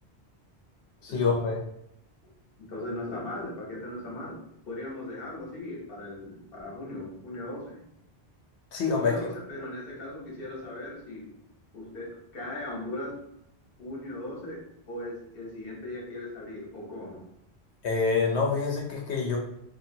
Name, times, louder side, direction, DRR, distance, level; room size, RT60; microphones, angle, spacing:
voice 1, 1.0-1.6 8.7-9.3 17.8-19.4, left 4 dB, 90° left, -1 dB, 0.9 m, -26 dB
voice 2, 2.7-4.4 4.7-7.8 9.0-11.3 11.7-13.2 13.8-17.2, left 1 dB, 60° left, -3 dB, 1.0 m, -38 dB
2.7 x 2.5 x 2.6 m, 0.76 s
omnidirectional pair, 1.1 m